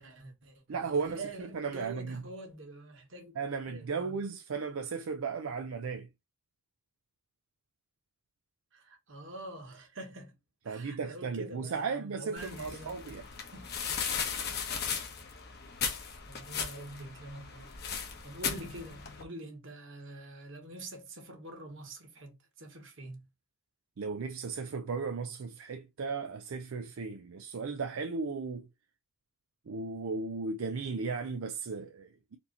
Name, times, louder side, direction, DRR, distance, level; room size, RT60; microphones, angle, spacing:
voice 1, 0.0-3.4 3.7-4.3 8.7-10.4 10.7-13.7 16.3-23.3, right 2 dB, 60° right, 1.6 m, -46 dB
voice 2, 0.7-1.2 1.5-2.2 3.4-6.1 10.7-13.2 24.0-28.7 29.7-32.4, right 4 dB, 80° right, 0.5 m, -35 dB
sound 1, 12.4-19.2, left 6 dB, 50° left, 1.1 m, -37 dB
4.4 x 2.8 x 4.1 m
head